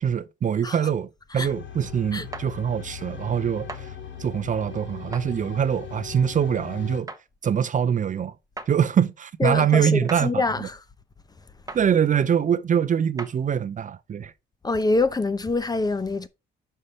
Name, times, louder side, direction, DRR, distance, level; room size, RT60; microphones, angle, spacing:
voice 1, 0.0-3.9 4.2-7.1 7.4-8.3 8.7-10.7 11.7-14.3, right 8 dB, 40° right, 0.5 m, -24 dB
sound 1, 1.5-7.0, left 8 dB, 70° left, 1.8 m, -39 dB
sound 2, 2.3-2.5 3.7-3.8 5.1-5.3 7.1-7.2 8.6-8.7 10.1-10.3 11.7-11.8 13.2-13.4, right 3 dB, 15° right, 0.9 m, -36 dB
voice 2, 9.4-10.8 14.6-16.3, left 3 dB, 20° left, 0.7 m, -25 dB
5.5 x 4.8 x 5.5 m
cardioid pair, 90°, 20 cm